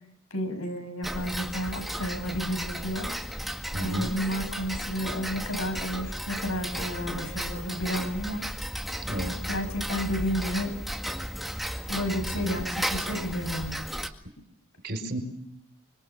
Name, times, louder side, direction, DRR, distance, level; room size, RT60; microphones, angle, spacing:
voice 1, 0.3-3.1 3.8-8.5 9.5-10.8 11.9-13.8, equal, 80° left, 6 dB, 7.9 m, -31 dB
Tick-tock, 1.0-14.1, equal, ahead, 1.9 m, -34 dB
voice 2, 3.7-4.1 9.1-9.4 12.3-12.6 14.8-15.2, right 1 dB, 50° right, 7 dB, 5.4 m, -32 dB
26.0 x 25.5 x 7.4 m, 0.72 s
head